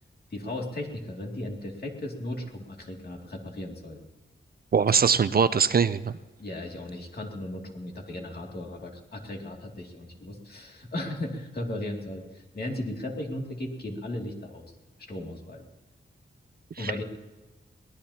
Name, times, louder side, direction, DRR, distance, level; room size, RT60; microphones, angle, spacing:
voice 1, 0.3-4.0 6.4-14.7 15.0-15.7 16.8-17.0, left 1 dB, 50° left, 0 dB, 2.4 m, -36 dB
voice 2, 4.7-6.1 16.8-17.0, right 6 dB, 50° right, 14 dB, 0.5 m, -22 dB
22.5 x 18.5 x 2.9 m, 1.1 s
wide cardioid pair, 150°, 20 cm